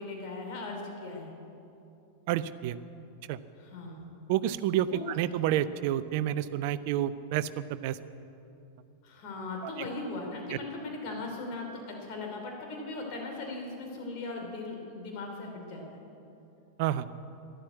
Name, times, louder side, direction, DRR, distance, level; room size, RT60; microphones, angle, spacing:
voice 1, 0.0-1.3 3.6-4.1 4.9-5.1 9.0-16.0, left 3 dB, 45° left, 1 dB, 2.9 m, -38 dB
voice 2, 2.3-2.8 3.3-3.4 4.3-8.0 16.8-17.1, right 12 dB, 50° right, 15 dB, 0.6 m, -29 dB
13.0 x 11.5 x 9.1 m, 2.8 s
figure-of-eight pair, 90°, 0 cm